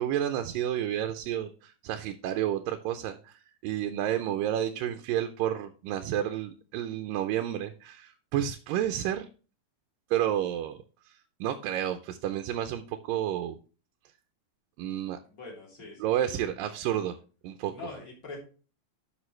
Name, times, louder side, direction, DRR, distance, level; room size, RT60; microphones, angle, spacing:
voice 1, 0.0-9.3 10.1-11.1 11.4-13.6 14.8-15.2 16.0-17.2 17.4-17.7, right 11 dB, 80° right, 7 dB, 2.3 m, -30 dB
voice 2, 15.3-16.5 17.7-18.4, left 3 dB, 25° left, -1 dB, 2.9 m, -44 dB
11.0 x 6.1 x 3.2 m, 0.36 s
omnidirectional pair, 4.1 m